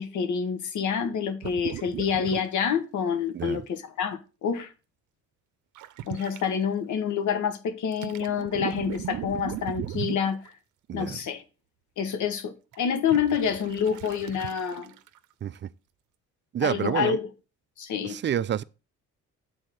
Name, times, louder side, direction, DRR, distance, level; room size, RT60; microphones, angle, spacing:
voice 1, 0.0-4.7 6.1-10.4 10.9-11.4 12.0-14.9 16.6-17.3 17.8-18.2, left 7 dB, 75° left, 1.3 m, -27 dB
sound 1, 1.4-2.5 2.8-2.9 5.7-6.4 7.9-10.5 12.7-15.2 15.5-15.6, right 12 dB, 80° right, 0.7 m, -37 dB
voice 2, 10.9-11.2 15.4-15.7 16.5-17.2 18.0-18.6, right 9 dB, 40° right, 0.4 m, -28 dB
7.1 x 4.2 x 6.3 m
cardioid pair, 90°, 30 cm